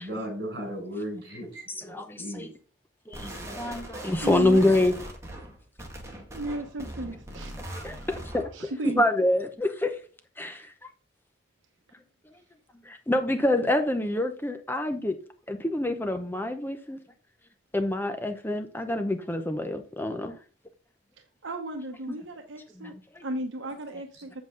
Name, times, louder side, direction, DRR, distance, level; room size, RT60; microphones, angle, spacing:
voice 1, 0.0-1.9 2.1-2.5, equal, 55° right, 3 dB, 4.7 m, -36 dB
voice 2, 1.7-2.5 3.1-4.9 7.7-9.9 10.4-10.9 12.9-15.2 15.5-17.0 17.7-20.3 22.8-23.2, left 1 dB, 10° left, 7 dB, 0.7 m, -27 dB
sound 1, 3.1-8.6, right 1 dB, 15° right, 1.8 m, -40 dB
voice 3, 4.2-4.7 6.3-7.6 7.9-8.1 8.5-9.0 21.4-22.9 23.2-24.4, right 1 dB, 80° right, 4 dB, 1.0 m, -35 dB
7.9 x 7.6 x 3.8 m, 0.38 s
head